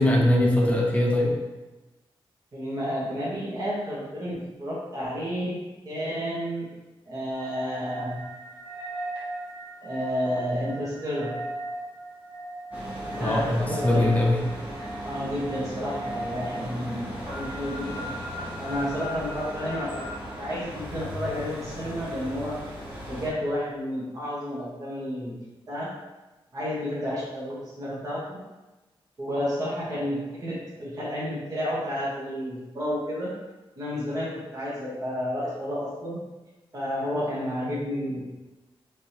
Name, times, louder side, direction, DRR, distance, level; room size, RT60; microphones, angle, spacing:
voice 1, 0.0-1.4 13.2-14.4, left 1 dB, 15° left, -2 dB, 0.7 m, -21 dB
voice 2, 2.5-5.6 5.8-6.7 7.1-8.1 9.8-11.3 13.1-14.1 15.0-18.1 18.6-20.1 20.4-22.6 23.1-25.4 25.7-25.9 26.5-28.4 29.2-33.3 33.8-36.2 36.7-38.2, equal, 40° right, -8 dB, 1.3 m, -31 dB
sound 1, 7.3-20.2, right 1 dB, 60° right, 1.5 m, -38 dB
sound 2, 12.7-23.3, equal, 15° right, 1.4 m, -38 dB
5.0 x 3.6 x 2.9 m, 1.1 s
wide cardioid pair, 170°, 9 cm